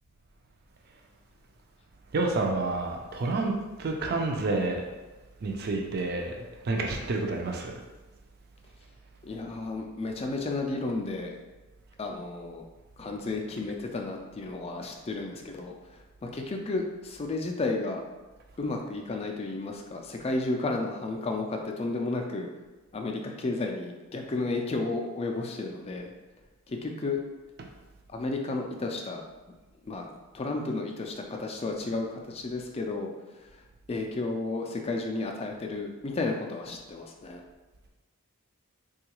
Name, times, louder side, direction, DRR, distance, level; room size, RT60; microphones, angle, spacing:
voice 1, 2.1-3.5 3.8-4.8 5.4-6.4 6.6-7.8, right 2 dB, 45° right, 2 dB, 0.4 m, -29 dB
voice 2, 9.2-11.3 12.0-12.6 13.0-15.7 16.2-18.0 18.6-22.5 22.9-26.1 26.7-27.2 28.1-29.2 29.8-33.4 33.9-37.4, left 3 dB, 25° left, 2 dB, 0.3 m, -32 dB
3.7 x 2.3 x 2.9 m, 1.2 s
head